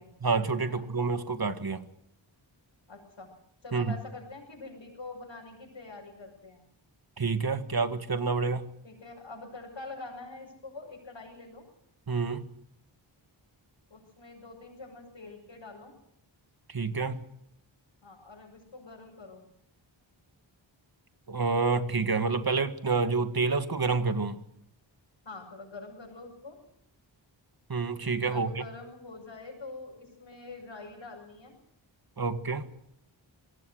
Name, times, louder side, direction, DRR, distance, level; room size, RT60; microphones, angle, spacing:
voice 1, 0.2-1.8 3.7-3.9 7.2-8.7 12.1-12.4 16.7-17.2 21.3-24.4 27.7-28.6 32.2-32.7, right 4 dB, 50° right, 9 dB, 1.8 m, -28 dB
voice 2, 2.9-3.3 3.6-6.7 8.8-11.6 13.9-15.9 18.0-19.4 25.2-26.6 28.1-31.5, left 3 dB, 65° left, -4 dB, 6.5 m, -45 dB
26.0 x 18.5 x 6.5 m, 0.75 s
cardioid pair, 50°, 48 cm